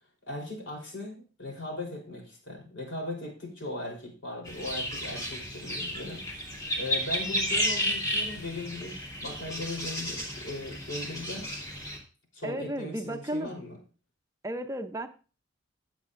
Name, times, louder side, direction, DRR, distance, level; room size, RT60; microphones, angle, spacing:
voice 1, 0.3-6.2 6.7-8.9 9.2-11.5 12.3-13.8, left 2 dB, 70° left, -1 dB, 3.6 m, -38 dB
sound 1, 4.4-12.0, equal, 20° left, 2.4 m, -32 dB
voice 2, 12.4-13.6 14.4-15.1, right 1 dB, 15° right, 7 dB, 0.6 m, -33 dB
16.5 x 7.5 x 2.5 m, 0.35 s
head